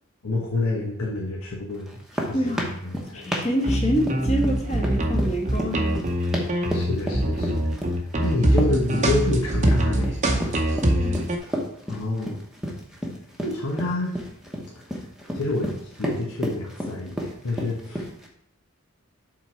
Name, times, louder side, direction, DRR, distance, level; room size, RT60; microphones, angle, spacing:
voice 1, 0.2-2.0 2.3-3.3 6.7-7.7 8.2-10.6 11.9-12.4 13.4-14.1 15.3-15.7 16.0-18.0, left 2 dB, 80° left, -4 dB, 1.2 m, -28 dB
sound 1, 1.9-18.3, equal, ahead, 1.0 m, -32 dB
voice 2, 2.3-2.7 3.1-6.0 10.9-11.3, equal, 30° left, 0 dB, 1.4 m, -26 dB
sound 2, 3.6-11.4, right 1 dB, 35° right, 0.7 m, -23 dB
7.3 x 4.1 x 4.5 m, 0.72 s
head